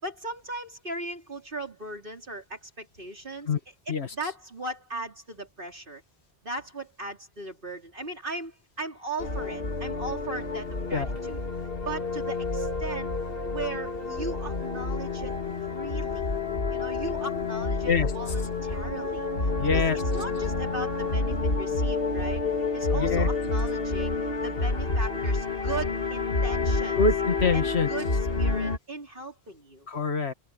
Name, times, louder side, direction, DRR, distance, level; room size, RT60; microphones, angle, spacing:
voice 1, 0.0-3.5 3.9-6.0 6.4-11.4 11.7-13.1 13.5-15.4 15.7-16.3 16.7-19.3 19.7-19.8 20.1-22.5 22.7-27.0 27.5-28.1 28.4-29.9, right 2 dB, 55° right, 4.7 m, -37 dB
sound 1, 9.2-28.8, left 3 dB, 60° left, 2.5 m, -29 dB
voice 2, 19.6-20.0 22.9-23.3 27.0-27.9 29.9-30.3, left 4 dB, 80° left, 2.0 m, -25 dB
omnidirectional pair, 1.1 m